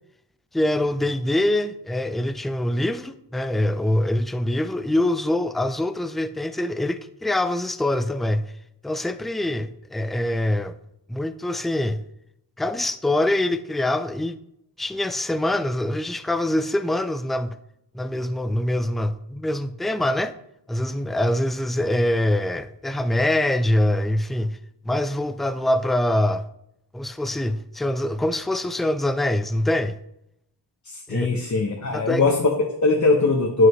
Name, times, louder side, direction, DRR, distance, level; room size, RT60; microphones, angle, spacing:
voice 1, 0.5-8.5 8.8-10.7 11.1-12.0 12.6-14.4 14.8-17.5 17.9-20.3 20.7-24.6 24.9-26.4 26.9-30.0 31.1-31.3 31.9-32.2, left 1 dB, ahead, 0.3 m, -24 dB
voice 2, 30.8-33.7, left 3 dB, 40° left, 0.9 m, -20 dB
11.0 x 5.5 x 3.1 m
wide cardioid pair, 100°, 44 cm